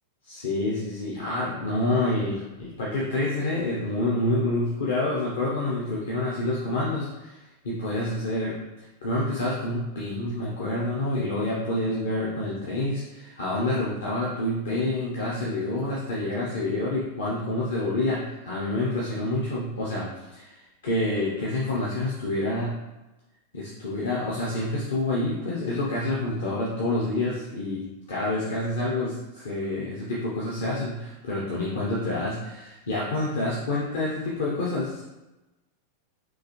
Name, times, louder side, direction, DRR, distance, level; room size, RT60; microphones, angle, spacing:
voice 1, 0.2-8.6 9.0-22.7 23.5-35.0, left 2 dB, 60° left, -5 dB, 0.7 m, -28 dB
3.9 x 2.7 x 2.9 m, 1.1 s
figure-of-eight pair, 90°, 0 cm